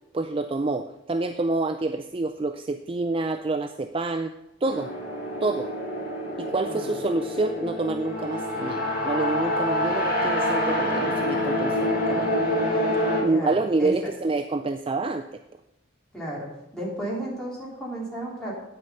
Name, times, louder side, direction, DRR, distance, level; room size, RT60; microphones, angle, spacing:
voice 1, 0.1-4.3 4.6-4.9 5.4-5.7 6.4-12.3 12.6-15.4, right 3 dB, 25° right, 8 dB, 0.4 m, -27 dB
sound 1, 4.6-13.2, left 1 dB, 50° left, 2.5 m, -26 dB
voice 2, 13.2-14.1 16.1-16.5 16.7-18.5, right 1 dB, 5° left, -5 dB, 3.3 m, -33 dB
9.3 x 9.1 x 5.5 m, 0.90 s
head